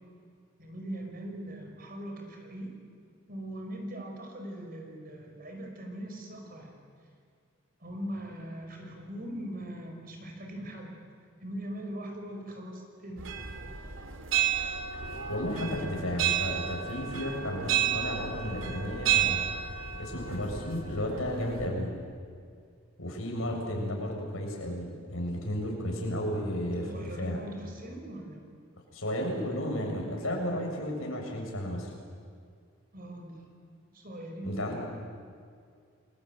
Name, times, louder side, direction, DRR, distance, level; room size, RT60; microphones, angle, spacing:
voice 1, 0.6-2.7 3.3-6.7 7.8-11.0 11.4-13.3 26.8-28.4 32.9-33.5 33.9-34.8, right 1 dB, 45° right, 2 dB, 5.7 m, -40 dB
sound 1, 13.2-21.7, right 10 dB, 65° right, 2.8 m, -32 dB
voice 2, 15.3-19.4 20.0-21.9 23.0-27.4 28.9-31.9 34.4-34.8, equal, 75° left, 0 dB, 7.2 m, -33 dB
29.5 x 21.5 x 9.1 m, 2.2 s
head